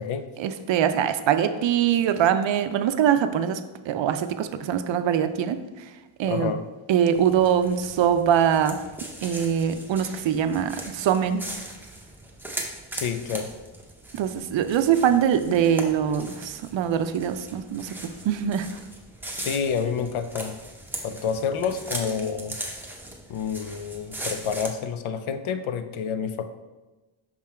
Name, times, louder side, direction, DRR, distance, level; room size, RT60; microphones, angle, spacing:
voice 1, 0.4-3.6 3.9-5.6 6.2-6.5 6.9-8.8 9.2-11.4 14.2-18.7, right 9 dB, 65° right, 10 dB, 0.5 m, -23 dB
voice 2, 6.3-6.6 12.9-13.5 19.4-20.5 21.0-22.6 23.3-26.4, left 6 dB, 80° left, 9 dB, 0.6 m, -28 dB
sound 1, 7.1-24.7, right 1 dB, 5° right, 0.6 m, -39 dB
6.0 x 3.7 x 4.3 m, 1.1 s
wide cardioid pair, 160°, 48 cm